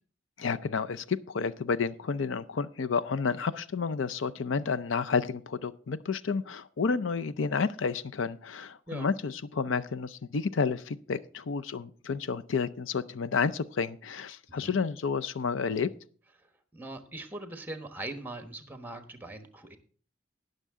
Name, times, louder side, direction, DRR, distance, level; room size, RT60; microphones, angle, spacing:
voice 1, 0.4-15.9, left 5 dB, 75° left, 13 dB, 0.5 m, -30 dB
voice 2, 16.4-19.8, right 2 dB, 10° right, 8 dB, 1.2 m, -41 dB
19.5 x 6.7 x 3.6 m, 0.42 s
head